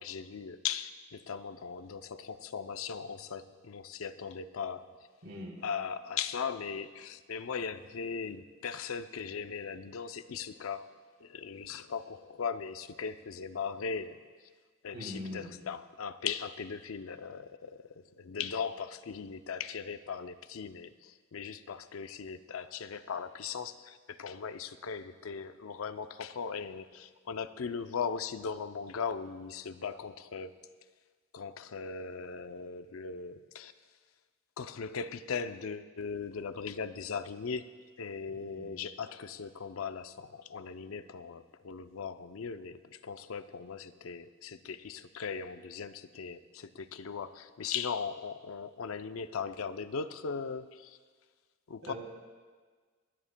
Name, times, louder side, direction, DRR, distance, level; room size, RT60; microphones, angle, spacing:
voice 1, 0.0-4.9 5.6-14.2 14.8-30.6 31.3-33.7 34.6-37.7 38.0-51.0 51.7-51.9, left 6 dB, 80° left, 11 dB, 0.5 m, -39 dB
voice 2, 5.2-5.5 14.9-15.5 38.4-38.7 51.8-51.9, left 1 dB, 85° right, -2 dB, 3.4 m, -42 dB
29.0 x 9.9 x 2.2 m, 1.5 s
head